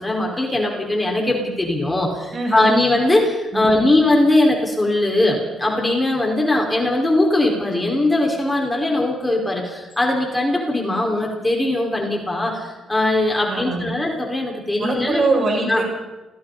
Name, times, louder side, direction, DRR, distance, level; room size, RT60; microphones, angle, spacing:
voice 1, 0.0-15.2 15.7-15.8, left 2 dB, 15° left, 0 dB, 5.4 m, -20 dB
voice 2, 2.3-2.8 3.5-3.9 13.5-13.9 14.8-15.8, right 3 dB, 45° right, 0 dB, 7.3 m, -23 dB
29.5 x 20.0 x 4.4 m, 1.1 s
cardioid pair, 90°, 0 cm